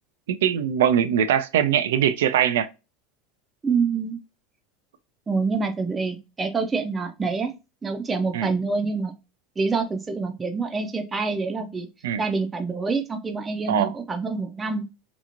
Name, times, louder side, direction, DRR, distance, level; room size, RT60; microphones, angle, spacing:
voice 1, 0.3-2.7 8.3-8.5 12.0-12.2 13.7-13.9, right 9 dB, 85° right, 0.4 m, -21 dB
voice 2, 3.6-4.2 5.3-7.5 7.8-9.1 9.6-11.9 12.2-14.8, right 4 dB, 20° right, 0.5 m, -26 dB
2.9 x 2.4 x 2.5 m
supercardioid pair, 115°, 0 cm